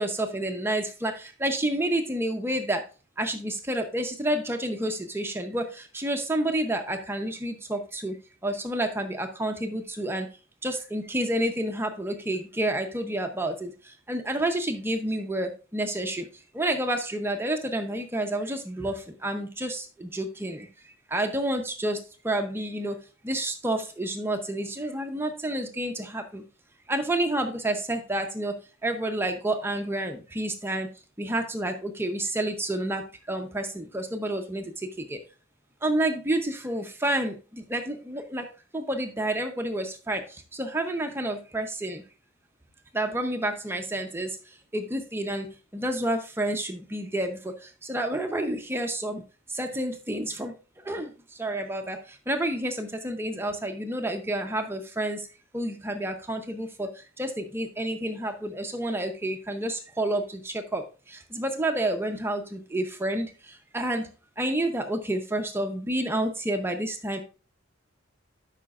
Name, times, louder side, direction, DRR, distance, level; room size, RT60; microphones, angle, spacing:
voice 1, 0.0-2.9 3.2-8.2 8.4-10.3 10.6-23.0 23.2-26.4 26.9-30.9 31.2-35.2 35.8-38.5 38.7-42.0 42.9-49.2 49.5-50.5 50.8-55.3 55.5-64.1 64.4-67.2, right 1 dB, 10° right, 5 dB, 0.7 m, -29 dB
12.5 x 5.7 x 2.4 m, 0.34 s
head